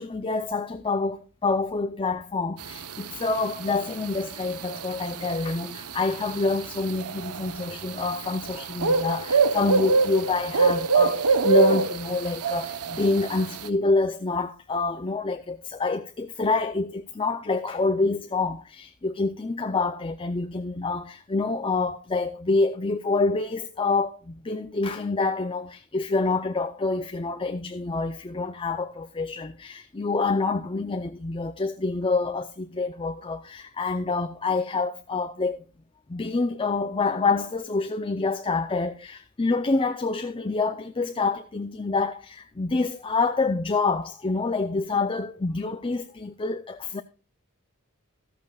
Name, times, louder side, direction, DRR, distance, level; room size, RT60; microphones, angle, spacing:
voice 1, 0.0-35.6 36.1-47.0, left 3 dB, 25° left, 0.5 m, -27 dB
sound 1, 2.6-13.7, right 4 dB, 85° right, 0.9 m, -25 dB
14.0 x 13.5 x 2.3 m
head